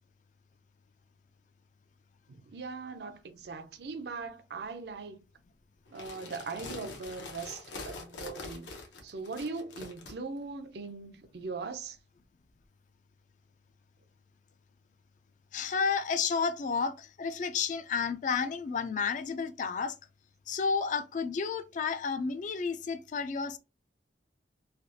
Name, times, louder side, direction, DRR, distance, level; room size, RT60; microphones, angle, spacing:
voice 1, 2.3-5.2 5.9-8.7 9.0-12.0, right 4 dB, 60° right, 0.5 m, -40 dB
sound 1, 5.9-10.1, left 3 dB, 85° left, 0.9 m, -44 dB
voice 2, 15.5-20.0 20.5-23.6, left 5 dB, 45° left, 0.3 m, -31 dB
3.3 x 2.3 x 2.7 m
head